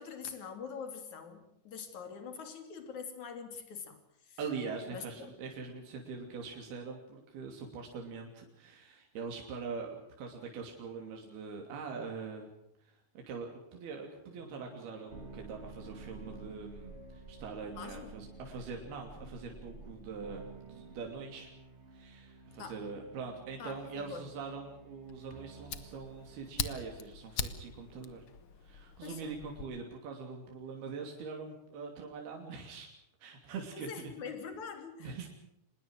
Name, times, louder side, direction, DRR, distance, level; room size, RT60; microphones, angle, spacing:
voice 1, 0.0-4.4 4.9-5.4 17.8-18.1 22.6-22.8 23.6-24.3 29.0-29.4 33.7-35.3, left 6 dB, 50° left, 7 dB, 4.2 m, -44 dB
voice 2, 4.4-12.5 13.3-21.5 21.9-28.2 28.6-32.9 33.2-33.9 35.0-35.3, right 5 dB, 80° right, 2 dB, 4.9 m, -43 dB
sound 1, 14.3-27.7, right 3 dB, 45° right, 0.8 m, -52 dB
Fire, 25.1-29.7, left 7 dB, 75° left, 1.2 m, -42 dB
26.0 x 20.5 x 6.5 m, 0.76 s
omnidirectional pair, 4.4 m